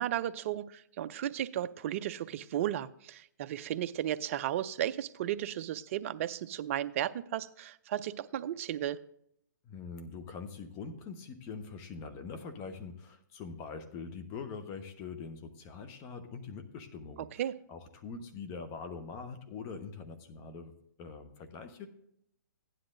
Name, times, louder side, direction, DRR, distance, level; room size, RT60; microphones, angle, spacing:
voice 1, 0.0-9.0 17.4-17.5, right 11 dB, 40° right, 13 dB, 0.4 m, -34 dB
voice 2, 9.6-17.3 17.7-20.7 21.0-21.9, left 5 dB, 25° left, 8 dB, 1.0 m, -43 dB
15.0 x 10.0 x 2.6 m, 0.73 s
hypercardioid pair, 140°, 11 cm